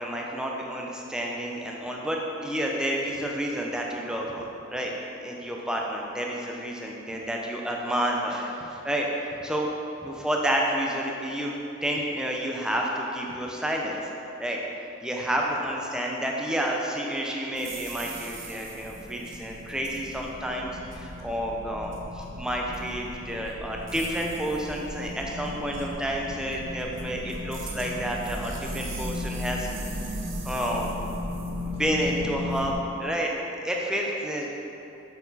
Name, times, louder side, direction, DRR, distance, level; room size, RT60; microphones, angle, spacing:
voice 1, 0.0-4.9 5.2-9.1 9.4-9.7 10.0-11.5 11.8-14.1 14.4-14.6 15.0-29.9 30.4-30.9 31.7-33.3 33.6-34.5, equal, 5° right, -1 dB, 0.6 m, -30 dB
sound 1, 17.6-32.8, left 1 dB, 70° right, 0.9 m, -36 dB
6.9 x 6.0 x 4.0 m, 2.9 s
head